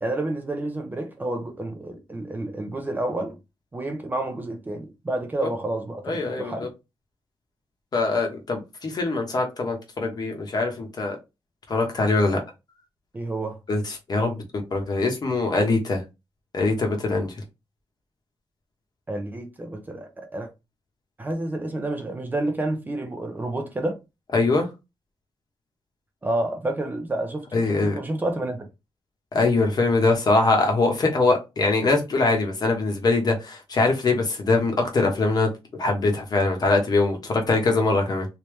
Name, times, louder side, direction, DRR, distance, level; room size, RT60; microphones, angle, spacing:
voice 1, 0.0-3.4 3.7-6.7 13.1-13.6 19.1-20.5 21.2-24.0 26.2-28.7, right 2 dB, 20° right, 0.6 m, -29 dB
voice 2, 6.0-6.7 7.9-11.2 11.7-12.4 13.7-14.4 14.7-16.0 16.5-17.3 24.3-24.6 27.5-27.9 29.3-35.5 35.8-38.3, left 3 dB, 40° left, 1.1 m, -22 dB
3.3 x 2.9 x 3.1 m
wide cardioid pair, 165°, 10 cm